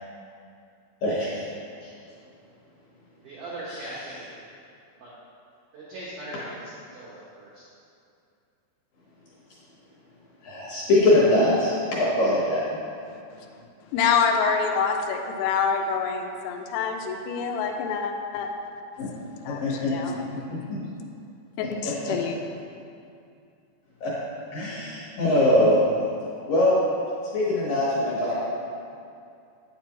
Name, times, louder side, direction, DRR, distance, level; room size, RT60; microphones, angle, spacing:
voice 1, 1.0-1.5 1.8-1.9 3.7-3.9 10.4-12.6 19.0-19.1 19.5-20.2 20.5-20.8 21.8-21.9 24.0-24.1 24.5-25.8 26.5-26.8 27.3-28.3, left 1 dB, 65° left, -6 dB, 2.3 m, -22 dB
voice 2, 3.2-4.5 5.0-5.1 5.7-7.6, right 1 dB, 80° right, -8 dB, 1.9 m, -40 dB
voice 3, 13.9-18.5 19.4-20.2 21.6-22.4, left 6 dB, 85° left, 3 dB, 3.0 m, -26 dB
8.7 x 8.1 x 3.0 m, 2.5 s
omnidirectional pair, 5.4 m